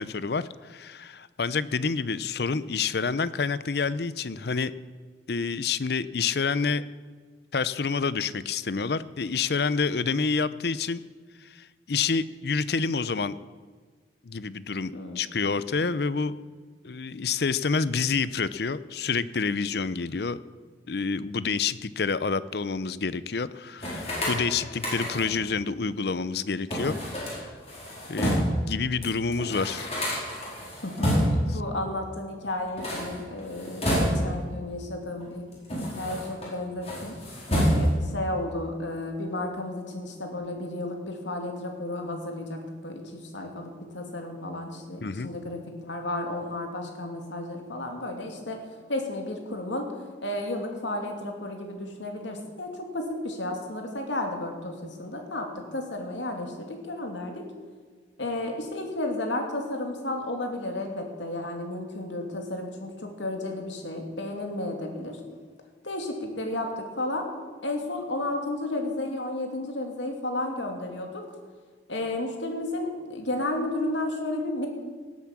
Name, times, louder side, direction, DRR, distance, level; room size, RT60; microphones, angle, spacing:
voice 1, 0.0-4.7 5.3-6.8 7.5-11.0 11.4-13.4 14.2-16.3 16.8-20.4 20.9-27.0 27.3-27.5 28.1-29.9 45.0-45.3, left 5 dB, 60° left, 16 dB, 0.6 m, -28 dB
sound 1, 23.8-25.4 26.7-28.6 29.0-29.1 29.3-31.5 32.6-34.5 35.2-36.5 36.8-38.1, equal, 35° left, 4.8 m, -28 dB
voice 2, 30.8-35.5 35.9-37.2 37.5-48.6 48.9-49.9 50.2-57.5 58.2-65.2 65.8-67.2 67.6-71.2 71.9-74.7, left 1 dB, 85° left, 3 dB, 2.7 m, -33 dB
18.0 x 8.4 x 7.3 m, 1.5 s
head